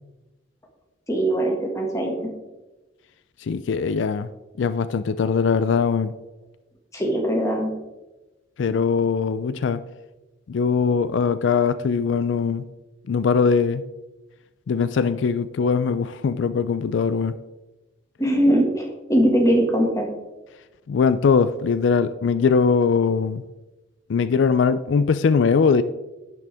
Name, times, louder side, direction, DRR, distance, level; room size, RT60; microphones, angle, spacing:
voice 1, 1.1-2.3 6.9-7.7 18.2-20.1, right 1 dB, 15° left, 0 dB, 1.8 m, -21 dB
voice 2, 3.4-4.3 4.6-6.1 8.6-9.8 10.5-12.6 13.1-13.8 14.7-17.3 20.9-23.4 24.1-25.8, left 5 dB, 75° left, 13 dB, 0.4 m, -21 dB
11.0 x 7.8 x 3.5 m, 1.1 s
head